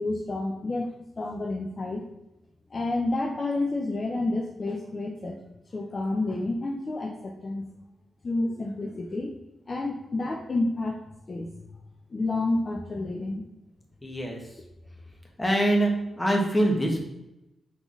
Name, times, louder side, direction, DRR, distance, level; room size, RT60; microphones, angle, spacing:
voice 1, 0.0-2.0 2.7-5.4 5.7-7.7 8.2-9.3 9.7-11.0 11.3-11.5 12.1-13.4, left 2 dB, 40° left, 0 dB, 0.5 m, -29 dB
voice 2, 14.0-14.4 15.4-15.9 16.2-17.1, right 1 dB, 15° left, 0 dB, 1.0 m, -24 dB
3.9 x 3.8 x 3.1 m, 0.93 s
cardioid pair, 85°, 0 cm